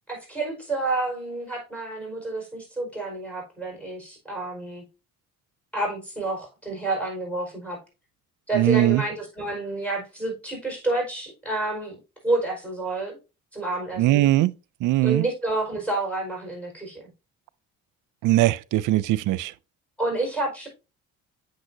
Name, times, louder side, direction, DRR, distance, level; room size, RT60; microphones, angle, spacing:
voice 1, 0.1-4.8 5.7-7.8 8.5-12.0 12.2-13.2 13.5-14.3 15.0-17.0 20.0-20.7, right 2 dB, 5° left, 4.8 m, -29 dB
voice 2, 8.5-9.0 14.0-14.5 14.8-15.2 18.2-19.5, right 15 dB, 75° right, 0.5 m, -20 dB
8.0 x 6.5 x 2.7 m
cardioid pair, 95°, 31 cm